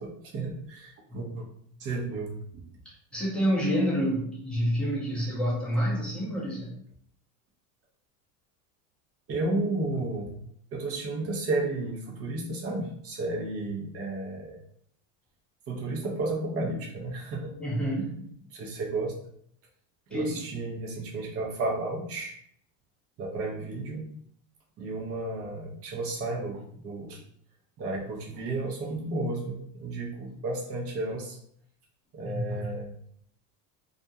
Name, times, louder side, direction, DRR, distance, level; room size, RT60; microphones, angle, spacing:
voice 1, 0.0-1.5 1.8-2.6 9.3-10.4 10.7-14.6 15.7-17.5 18.5-19.1 20.1-22.3 23.2-24.0 24.8-27.2 27.8-31.4 32.1-32.9, right 2 dB, 30° right, -1 dB, 0.7 m, -32 dB
voice 2, 3.1-6.7 17.6-18.3 20.1-20.4 32.2-32.7, equal, ahead, -7 dB, 0.7 m, -28 dB
2.4 x 2.1 x 2.7 m, 0.67 s
supercardioid pair, 130°, 44 cm